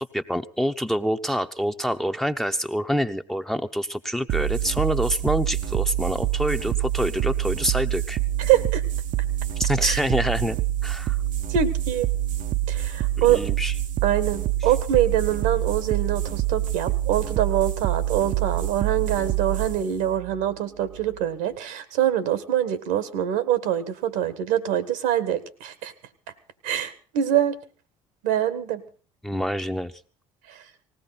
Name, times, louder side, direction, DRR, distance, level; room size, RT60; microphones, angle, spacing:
voice 1, 0.0-8.2 9.6-10.6 10.8-11.2 13.3-13.7 29.2-29.9, equal, ahead, 6 dB, 0.9 m, -26 dB
sound 1, 4.3-21.3, right 13 dB, 50° right, 0.9 m, -26 dB
voice 2, 8.4-8.8 9.8-10.0 11.5-12.1 12.7-13.4 14.0-25.9 26.6-27.6 28.2-28.8 30.5-30.6, right 10 dB, 65° right, 14 dB, 1.6 m, -24 dB
19.5 x 16.5 x 4.1 m, 0.41 s
hypercardioid pair, 60°, 17 cm